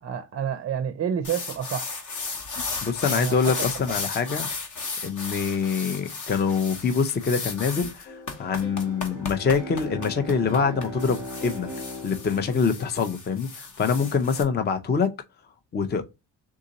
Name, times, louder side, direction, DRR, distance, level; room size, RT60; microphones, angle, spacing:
voice 1, 0.0-2.0 3.1-3.5, right 8 dB, 35° right, 0.5 m, -29 dB
sound 1, 1.2-14.4, left 4 dB, 45° left, 1.1 m, -35 dB
voice 2, 2.8-4.5 5.0-11.7 12.0-15.1 15.7-16.0, left 5 dB, 25° left, 0.5 m, -25 dB
sound 2, 8.1-13.2, left 2 dB, 80° left, 1.2 m, -44 dB
Bowed string instrument, 8.7-13.5, left 1 dB, 10° right, 1.0 m, -40 dB
3.7 x 2.7 x 3.9 m
cardioid pair, 95°, 44 cm